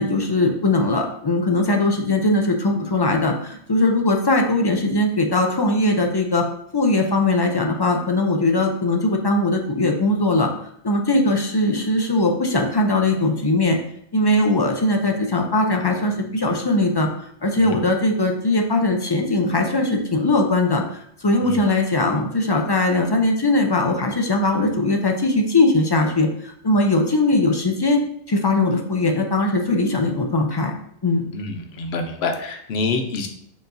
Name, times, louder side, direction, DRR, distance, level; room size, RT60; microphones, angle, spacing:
voice 1, 0.0-6.4 6.7-10.5 10.8-13.8 14.1-17.1 17.4-20.8 21.2-28.0 28.3-30.7 31.0-31.3, left 2 dB, 40° left, 2 dB, 0.4 m, -20 dB
voice 2, 31.3-33.3, left 3 dB, 80° left, 5 dB, 0.9 m, -26 dB
6.7 x 3.0 x 2.6 m, 0.68 s
omnidirectional pair, 1.1 m